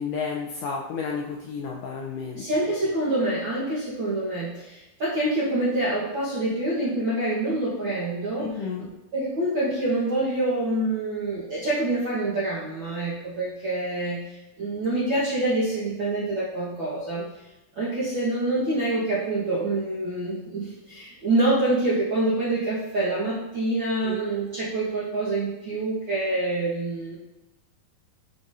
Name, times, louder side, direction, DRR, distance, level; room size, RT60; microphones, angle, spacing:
voice 1, 0.0-2.4 8.4-8.9 24.0-24.2, left 5 dB, 80° left, -2 dB, 1.9 m, -31 dB
voice 2, 2.3-17.2 17.8-27.1, right 2 dB, 60° right, -9 dB, 1.2 m, -26 dB
11.0 x 4.0 x 2.7 m, 0.99 s
omnidirectional pair, 4.3 m